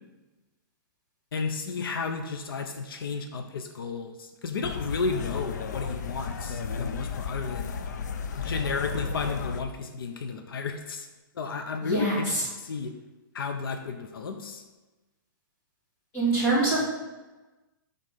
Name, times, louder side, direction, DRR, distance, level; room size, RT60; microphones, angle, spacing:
voice 1, 1.3-7.7 8.4-11.1 11.4-12.9 13.3-14.6, left 4 dB, 85° left, 6 dB, 0.7 m, -33 dB
sound 1, 4.6-9.6, left 5 dB, 55° left, 0.5 m, -34 dB
voice 2, 11.8-12.4 16.1-16.8, right 2 dB, 20° left, -8 dB, 2.7 m, -24 dB
7.4 x 3.9 x 5.6 m, 1.2 s
hypercardioid pair, 175°, 12 cm